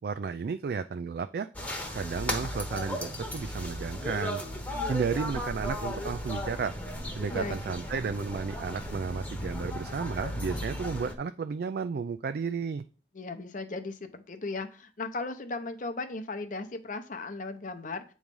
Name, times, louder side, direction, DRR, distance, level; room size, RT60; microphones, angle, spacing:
voice 1, 0.0-1.5 1.9-4.4 4.7-6.7 7.2-12.8, right 5 dB, 55° right, 9 dB, 0.3 m, -33 dB
sound 1, 1.5-11.1, left 1 dB, 10° left, 0.9 m, -35 dB
voice 2, 13.1-18.1, left 3 dB, 45° left, 7 dB, 0.7 m, -36 dB
8.5 x 3.2 x 5.2 m, 0.37 s
head